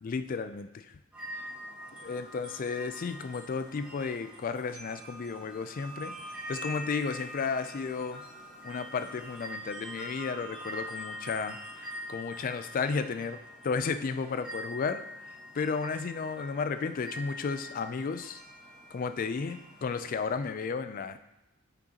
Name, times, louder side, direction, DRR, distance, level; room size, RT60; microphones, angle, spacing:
voice 1, 0.0-0.9 1.3-1.4 2.0-8.2 8.6-13.4 13.6-15.0 15.5-18.4 18.9-21.2, left 5 dB, 40° left, 10 dB, 0.3 m, -33 dB
sound 1, 1.1-20.2, equal, 5° right, 2.0 m, -44 dB
6.7 x 6.1 x 2.9 m, 0.95 s
head